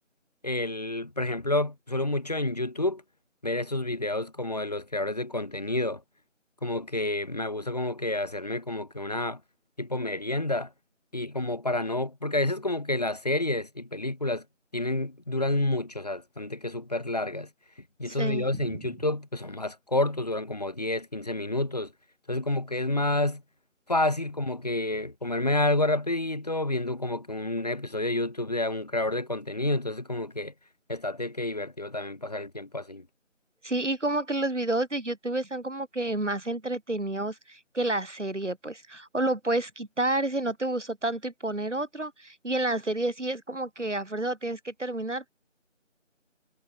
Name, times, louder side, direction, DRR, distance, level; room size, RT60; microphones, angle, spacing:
voice 1, 0.4-3.0 3.4-6.0 6.6-9.4 9.8-10.7 11.1-14.4 14.7-17.5 18.0-21.9 22.3-23.4 23.9-30.5 30.9-33.1, left 2 dB, 30° left, 5.6 m, -29 dB
voice 2, 18.1-18.5 33.6-45.3, right 2 dB, 65° right, 3.5 m, -30 dB
figure-of-eight pair, 175°, 38 cm